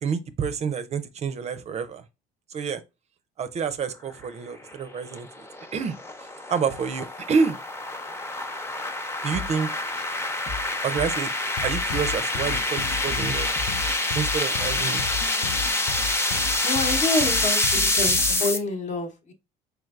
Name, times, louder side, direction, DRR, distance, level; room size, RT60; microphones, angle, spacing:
voice 1, 0.0-2.0 2.5-2.8 3.4-5.5 5.7-7.6 9.2-9.7 10.8-11.3 11.6-13.5 14.1-15.2, right 6 dB, 40° right, 0.4 m, -28 dB
sound 1, 4.6-18.6, left 2 dB, 15° left, 0.7 m, -26 dB
sound 2, 9.3-9.7 10.0-11.6 11.9-12.3 12.6-14.4, left 4 dB, 85° left, 1.0 m, -38 dB
sound 3, 11.6-18.5, left 8 dB, 65° left, 0.5 m, -34 dB
voice 2, 16.6-19.3, left 2 dB, 45° left, 1.0 m, -28 dB
4.5 x 3.2 x 2.4 m
cardioid pair, 110°, 17 cm